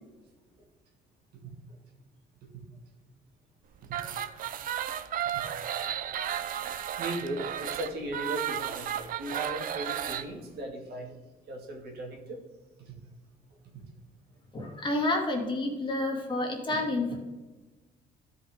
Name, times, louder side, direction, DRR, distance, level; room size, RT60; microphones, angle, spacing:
sound 1, 3.8-10.3, right 10 dB, 55° right, 0.6 m, -33 dB
voice 1, 7.0-11.1 11.5-12.4 12.9-13.0 13.7-13.8, right 1 dB, 70° right, 1 dB, 2.2 m, -37 dB
voice 2, 14.5-17.2, left 2 dB, 30° left, 1 dB, 2.1 m, -29 dB
13.0 x 5.3 x 3.6 m, 1.2 s
cardioid pair, 110°, 17 cm